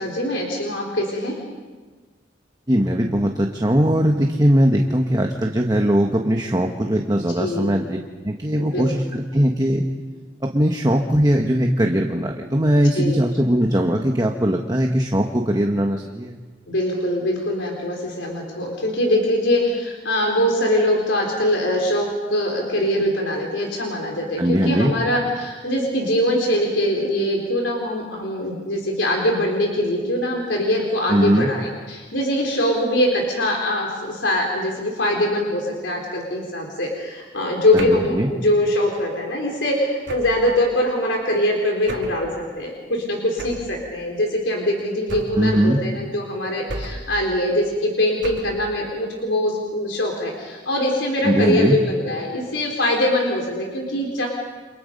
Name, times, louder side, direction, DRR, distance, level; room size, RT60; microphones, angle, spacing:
voice 1, 0.0-1.4 7.4-7.7 8.6-8.9 12.9-13.2 16.7-42.3 42.6-54.3, left 1 dB, 90° left, 0 dB, 4.2 m, -22 dB
voice 2, 2.7-8.0 8.2-9.8 10.4-16.4 24.4-24.9 31.1-31.5 37.7-38.3 45.4-45.8 51.2-51.8, equal, 20° right, 2 dB, 1.3 m, -20 dB
sound 1, 37.8-38.2 40.1-40.5 41.9-42.3 43.4-43.8 45.1-45.5 46.7-47.2 48.2-48.6, right 2 dB, 80° right, 2.5 m, -33 dB
30.0 x 26.5 x 5.4 m, 1.4 s
head